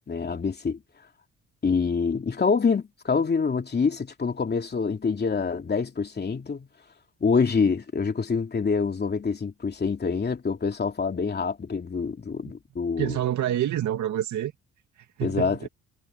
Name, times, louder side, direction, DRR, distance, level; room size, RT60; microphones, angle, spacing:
voice 1, 0.1-0.8 1.6-6.7 7.2-13.2 15.2-15.7, left 5 dB, 35° left, 2.9 m, -26 dB
voice 2, 13.0-14.5 15.2-15.7, right 12 dB, 70° right, 2.2 m, -27 dB
cardioid pair, 90°, 30 cm